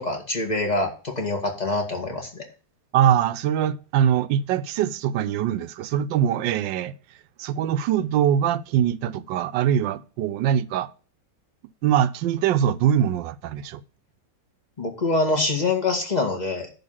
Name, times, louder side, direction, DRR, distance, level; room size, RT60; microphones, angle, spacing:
voice 1, 0.0-2.4 14.8-16.7, left 2 dB, 25° left, 1.9 m, -25 dB
voice 2, 2.9-6.9 7.4-10.9 11.8-13.8, right 9 dB, 80° right, 1.3 m, -22 dB
10.5 x 3.7 x 7.3 m
omnidirectional pair, 2.0 m